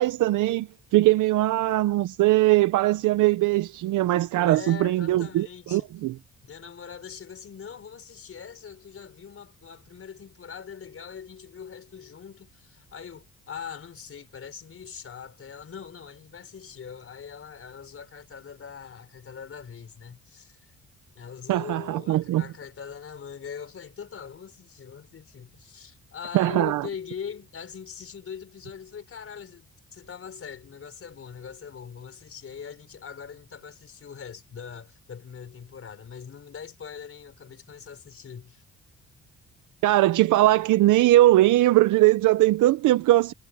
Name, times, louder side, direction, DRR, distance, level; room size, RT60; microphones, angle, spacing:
voice 1, 0.0-6.2 21.5-22.4 26.3-26.9 39.8-43.3, right 16 dB, 85° right, 0.8 m, -21 dB
voice 2, 4.3-5.9 6.4-20.6 21.2-38.6, left 7 dB, 45° left, 4.4 m, -42 dB
cardioid pair, 90°, 30 cm